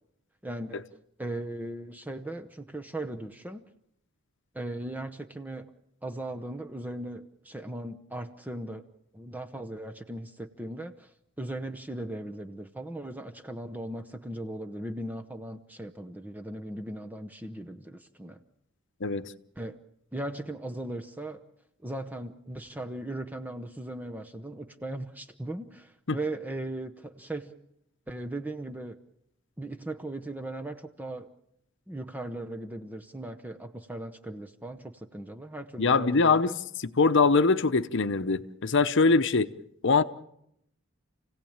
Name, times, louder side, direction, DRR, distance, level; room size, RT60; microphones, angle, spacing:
voice 1, 0.4-0.8 1.2-3.6 4.5-5.7 6.0-8.9 9.1-11.1 11.4-18.4 19.6-19.8 20.1-21.4 21.8-27.5 28.1-29.0 29.6-31.3 31.9-36.6, right 1 dB, 10° right, 0.9 m, -38 dB
voice 2, 19.0-19.3 26.1-26.2 35.8-36.5 37.0-39.5 39.8-40.0, left 4 dB, 60° left, 0.9 m, -22 dB
29.0 x 17.0 x 8.8 m
head